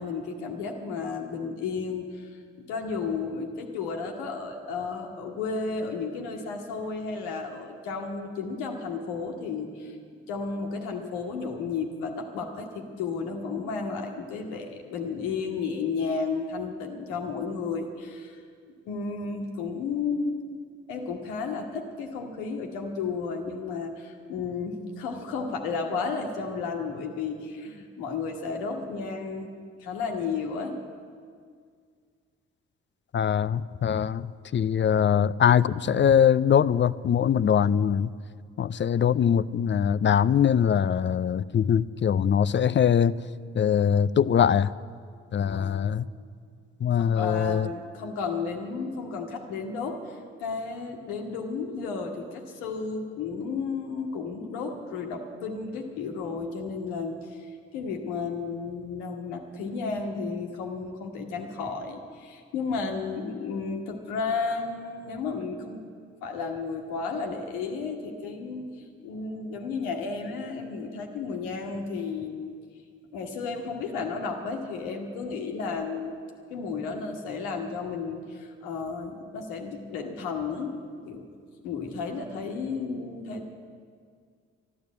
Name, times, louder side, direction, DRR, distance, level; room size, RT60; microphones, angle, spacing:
voice 1, 0.0-18.4 18.9-20.4 20.9-29.5 29.8-30.8 45.3-46.0 47.0-65.9 66.2-68.7 69.0-72.6 73.1-76.2 76.5-80.7 81.0-81.3 81.6-83.5, left 4 dB, 90° left, 2 dB, 1.3 m, -33 dB
voice 2, 33.1-34.3 34.5-38.1 38.6-43.1 43.6-44.7 45.3-46.1 46.8-47.7, left 8 dB, 40° left, 17 dB, 0.5 m, -22 dB
12.0 x 12.0 x 8.4 m, 2.1 s
hypercardioid pair, 40°, 30 cm